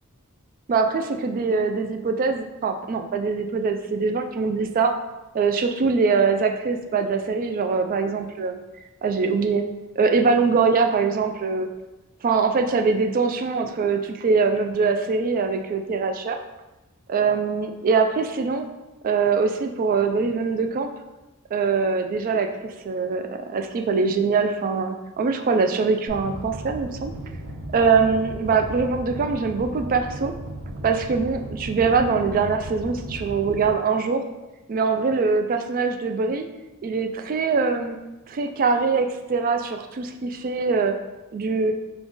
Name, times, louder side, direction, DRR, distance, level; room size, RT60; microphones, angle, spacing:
voice 1, 0.7-4.9 5.3-8.6 9.0-9.6 10.0-11.7 12.2-16.4 17.1-18.7 19.0-20.9 21.5-27.1 27.7-30.3 30.8-34.2 34.7-36.4 36.8-38.0 38.3-40.9 41.3-41.7, right 4 dB, 40° right, 5 dB, 0.3 m, -23 dB
sound 1, 26.1-33.7, right 1 dB, 85° right, 0.6 m, -35 dB
3.8 x 2.3 x 3.7 m, 1.0 s
head